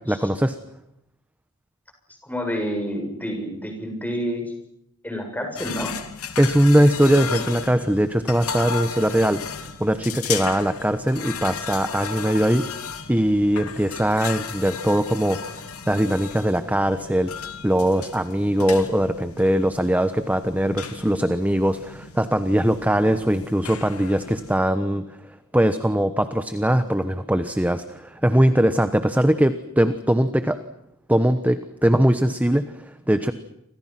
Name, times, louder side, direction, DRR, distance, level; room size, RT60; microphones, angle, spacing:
voice 1, 0.1-0.6 6.4-12.6 13.1-15.4 15.9-17.3 17.6-25.1 25.5-30.6 31.1-33.3, right 1 dB, 5° right, 10 dB, 1.1 m, -21 dB
voice 2, 2.2-4.5 5.0-5.9, equal, 10° left, 4 dB, 7.5 m, -28 dB
sound 1, 5.6-24.5, left 6 dB, 90° left, 2.6 m, -35 dB
30.0 x 26.0 x 6.1 m, 0.79 s
head